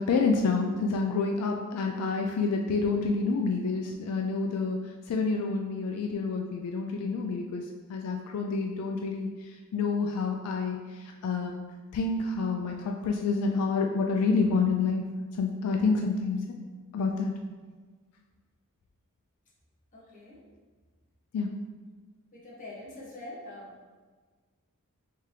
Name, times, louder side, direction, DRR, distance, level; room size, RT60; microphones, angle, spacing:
voice 1, 0.0-11.6 11.9-15.0 15.3-16.4 16.9-17.3 21.3-21.5, left 4 dB, 80° left, 2 dB, 0.3 m, -28 dB
voice 2, 19.9-20.4 22.3-23.7, left 1 dB, 35° left, -6 dB, 1.0 m, -44 dB
3.6 x 2.8 x 3.2 m, 1.4 s
head